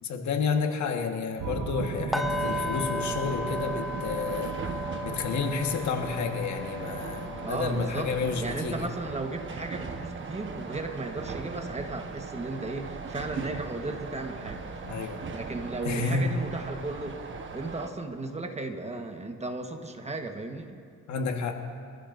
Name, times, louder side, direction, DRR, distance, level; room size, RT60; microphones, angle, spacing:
voice 1, 0.0-4.6 5.0-8.9 14.8-15.2 15.8-16.3 21.1-21.5, left 5 dB, 70° left, 3 dB, 1.5 m, -30 dB
sound 1, 1.4-9.7, right 6 dB, 80° right, 1.2 m, -39 dB
sound 2, 2.1-12.1 12.4-12.7 13.1-13.2, left 1 dB, ahead, 0.7 m, -37 dB
sound 3, 2.2-17.9, right 4 dB, 40° right, 1.2 m, -39 dB
voice 2, 7.4-8.1 8.4-14.6 15.3-17.2 17.5-20.8, right 2 dB, 20° right, 5 dB, 1.3 m, -35 dB
24.0 x 14.5 x 2.6 m, 2.3 s
cardioid pair, 90°, 30 cm